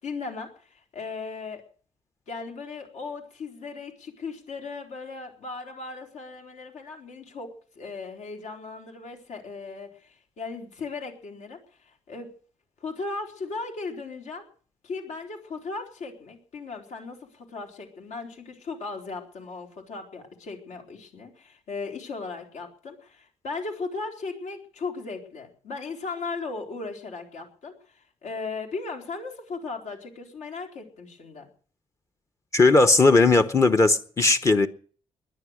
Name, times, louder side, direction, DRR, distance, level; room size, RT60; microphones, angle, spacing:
voice 1, 0.0-1.6 2.3-12.3 12.8-14.5 14.8-31.5, left 4 dB, 75° left, 4.1 m, -37 dB
voice 2, 32.5-34.7, left 3 dB, 25° left, 0.8 m, -18 dB
19.5 x 11.0 x 6.4 m
cardioid pair, 160°, 12 cm